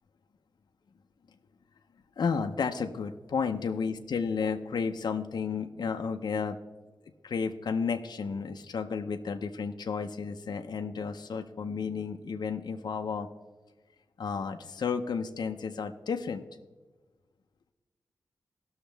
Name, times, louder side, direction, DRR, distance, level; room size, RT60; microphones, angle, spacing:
voice 1, 2.2-6.6 7.2-13.3 14.2-16.5, left 5 dB, 65° left, 5 dB, 0.6 m, -32 dB
18.0 x 6.3 x 3.4 m, 1.3 s
wide cardioid pair, 90°, 8 cm